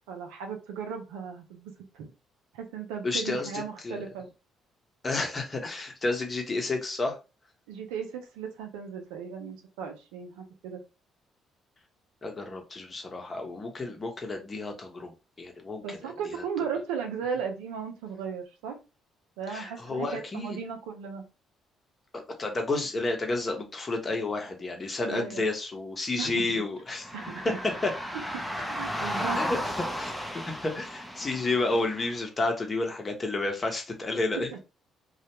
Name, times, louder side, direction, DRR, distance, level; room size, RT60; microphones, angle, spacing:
voice 1, 0.1-2.1 2.5-4.3 7.7-10.8 15.8-18.8 19.4-21.3 25.1-25.4 26.2-26.6 27.1-27.6 28.1-28.2 28.6-29.4 34.3-34.6, right 6 dB, 90° right, 0.5 m, -36 dB
voice 2, 3.0-3.5 3.8-4.0 5.0-7.2 12.2-16.0 19.5-20.6 22.1-27.1 27.8-27.9 29.3-29.6 30.0-34.5, left 2 dB, 35° left, 0.8 m, -31 dB
sound 1, 27.0-32.2, equal, ahead, 0.6 m, -34 dB
2.4 x 2.1 x 2.9 m
supercardioid pair, 65°, 0 cm